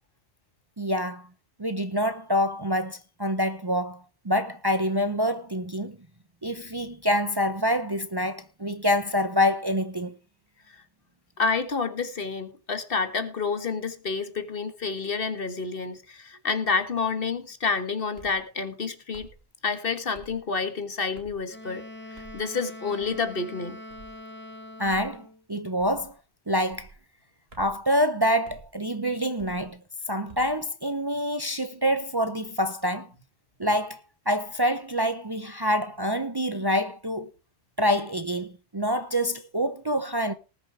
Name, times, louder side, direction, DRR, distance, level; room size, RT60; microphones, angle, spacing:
voice 1, 0.8-1.3 1.6-6.0 6.4-10.1 24.8-26.2 26.5-26.9 27.6-29.8 30.1-33.1 33.6-34.0 34.3-37.3 37.8-40.3, equal, 25° right, 0.7 m, -26 dB
voice 2, 11.4-19.3 19.6-23.8, left 4 dB, 60° left, 1.6 m, -29 dB
sound 1, 18.2-18.4 19.1-19.4 20.1-20.4 21.1-21.4 22.2-22.4 23.0-23.3 23.9-24.2 24.8-25.1 25.8-26.1 26.7-27.0 27.5-27.8 28.4-28.7 29.4-29.7 30.3-30.6, right 3 dB, 70° right, 3.2 m, -49 dB
Wind instrument woodwind instrument, 21.5-25.4, left 1 dB, 10° left, 1.9 m, -43 dB
19.5 x 6.5 x 4.8 m
omnidirectional pair, 1.1 m